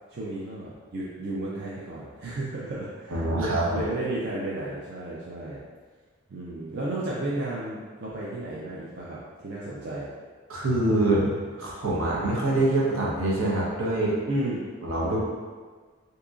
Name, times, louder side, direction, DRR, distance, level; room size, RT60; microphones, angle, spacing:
voice 1, 0.1-5.6 6.3-10.1 14.3-14.6, right 2 dB, 50° right, -7 dB, 0.4 m, -33 dB
voice 2, 3.1-3.9 10.5-11.3 11.6-14.1 14.8-15.2, right 2 dB, 75° right, -5 dB, 0.9 m, -25 dB
3.7 x 2.8 x 2.4 m, 1.5 s
head